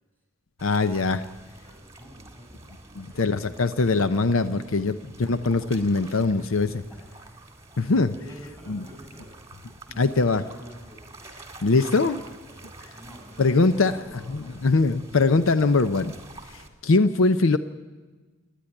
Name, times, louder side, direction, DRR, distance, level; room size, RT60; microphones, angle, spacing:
voice 1, 0.6-1.2 3.0-6.8 7.8-8.1 8.7-8.8 10.0-10.4 11.6-12.2 13.4-14.0 14.3-16.1 16.5-17.6, left 3 dB, 70° left, 11 dB, 0.7 m, -22 dB
sound 1, 0.6-16.7, right 2 dB, 15° right, 2.0 m, -47 dB
voice 2, 1.5-3.9 4.7-4.9 6.8-7.5 8.1-9.4 9.9-11.0 11.8-12.2 12.9-14.6, equal, 10° left, 1 dB, 6.0 m, -48 dB
27.5 x 10.0 x 9.9 m, 1.3 s
head